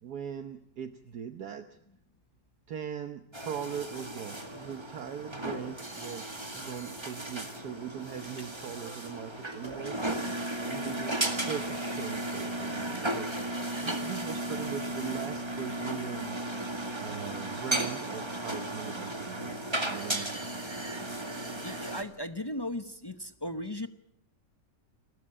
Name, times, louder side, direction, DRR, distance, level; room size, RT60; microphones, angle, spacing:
voice 1, 0.0-1.8 2.7-10.0 10.7-13.3 13.8-16.4 17.0-20.3, right 8 dB, 65° right, 9 dB, 1.5 m, -40 dB
sound 1, 3.3-22.0, right 1 dB, 15° right, 1.9 m, -35 dB
voice 2, 21.6-23.9, left 1 dB, 20° left, 10 dB, 0.7 m, -37 dB
29.5 x 13.5 x 8.7 m, 0.77 s
omnidirectional pair, 1.8 m